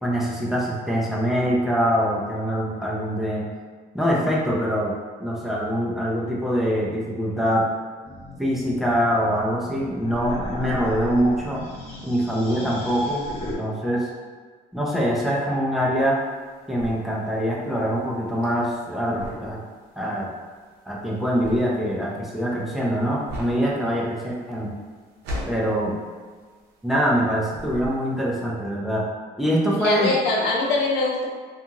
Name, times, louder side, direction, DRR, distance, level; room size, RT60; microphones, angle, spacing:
voice 1, 0.0-3.5 3.9-4.9 5.2-7.7 8.4-11.6 12.0-13.2 13.6-14.1 14.7-16.2 16.7-19.6 20.0-20.3 20.9-24.7 25.5-25.9 26.8-29.0 29.4-30.1, equal, ahead, -5 dB, 0.6 m, -24 dB
sound 1, 8.0-13.6, equal, 35° left, 0.8 m, -37 dB
sound 2, 16.0-27.2 27.5-28.3, left 1 dB, 80° right, 0.7 m, -38 dB
voice 2, 29.7-31.3, left 3 dB, 90° left, -2 dB, 0.6 m, -22 dB
2.5 x 2.4 x 2.8 m, 1.5 s
cardioid pair, 110°, 17 cm